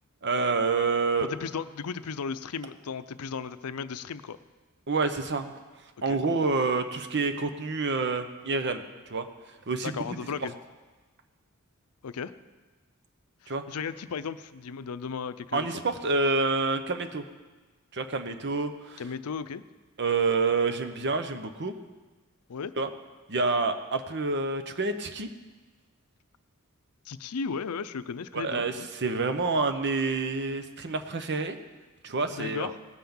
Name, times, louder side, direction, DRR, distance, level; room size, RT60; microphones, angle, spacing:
voice 1, 0.2-1.3 4.9-5.5 6.0-9.3 9.7-10.2 13.5-13.6 15.5-17.2 17.9-19.0 20.0-21.7 22.8-22.9 23.3-25.3 28.3-31.6 32.0-32.7, right 3 dB, 50° right, 9 dB, 0.9 m, -28 dB
voice 2, 1.2-4.4 6.1-6.2 9.8-10.6 12.0-12.3 13.4-15.8 19.0-19.6 22.5-22.7 27.1-28.9 32.3-32.7, left 5 dB, 80° left, 13 dB, 0.5 m, -35 dB
17.5 x 5.9 x 7.1 m, 1.3 s
head